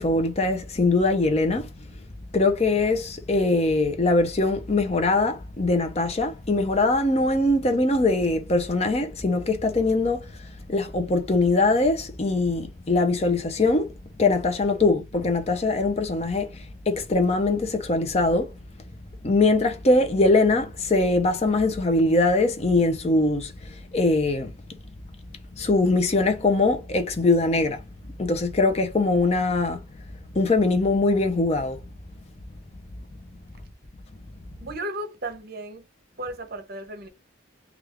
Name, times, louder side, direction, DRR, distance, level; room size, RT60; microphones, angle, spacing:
voice 1, 0.0-1.7 2.3-13.9 14.2-18.5 19.2-24.8 25.5-27.8 28.2-29.8 30.3-31.8, left 2 dB, 30° left, 0.5 m, -22 dB
voice 2, 34.6-35.8 36.2-37.1, right 1 dB, 50° right, 0.7 m, -34 dB
3.2 x 2.3 x 3.5 m
head